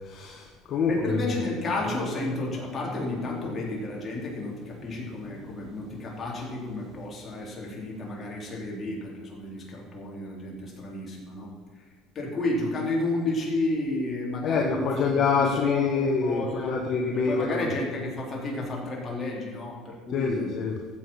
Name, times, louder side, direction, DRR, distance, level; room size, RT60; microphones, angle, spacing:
voice 1, 0.0-1.2 14.4-17.7 20.1-20.7, left 5 dB, 50° left, 1 dB, 1.5 m, -26 dB
voice 2, 0.9-11.5 11.7-11.8 12.1-16.7 17.1-20.5, left 2 dB, 30° left, -3 dB, 4.3 m, -32 dB
sound 1, 1.8-8.8, equal, 25° right, 3.5 m, -44 dB
14.0 x 8.3 x 5.9 m, 1.5 s
cardioid pair, 110°, 0 cm